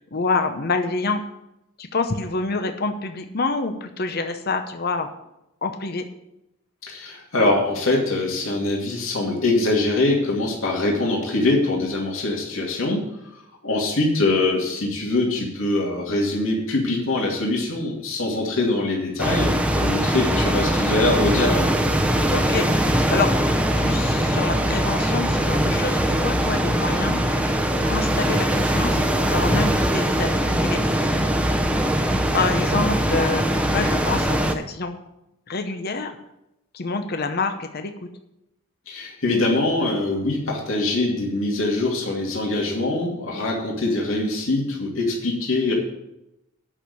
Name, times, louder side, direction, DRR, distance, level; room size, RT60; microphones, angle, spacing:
voice 1, 0.1-1.2 1.8-5.1 5.6-6.1 22.3-23.3 23.8-27.2 27.8-29.0 29.3-31.2 32.3-34.9 35.5-36.2 36.7-37.9, left 3 dB, 50° left, 6 dB, 0.8 m, -27 dB
voice 2, 6.8-13.0 13.6-21.7 38.9-45.7, left 2 dB, 75° left, -2 dB, 2.4 m, -23 dB
sound 1, 19.2-34.5, right 1 dB, 5° right, 0.8 m, -21 dB
8.9 x 6.4 x 8.3 m, 0.86 s
head